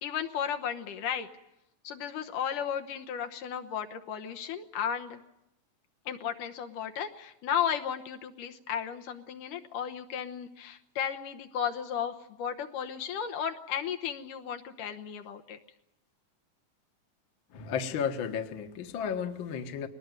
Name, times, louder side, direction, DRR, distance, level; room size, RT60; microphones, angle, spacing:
voice 1, 0.0-1.3 1.8-5.2 6.1-15.6, left 8 dB, 75° left, 5 dB, 2.5 m, -34 dB
voice 2, 17.5-19.9, left 7 dB, 50° left, 6 dB, 1.7 m, -33 dB
22.0 x 19.0 x 9.3 m, 0.86 s
omnidirectional pair, 3.9 m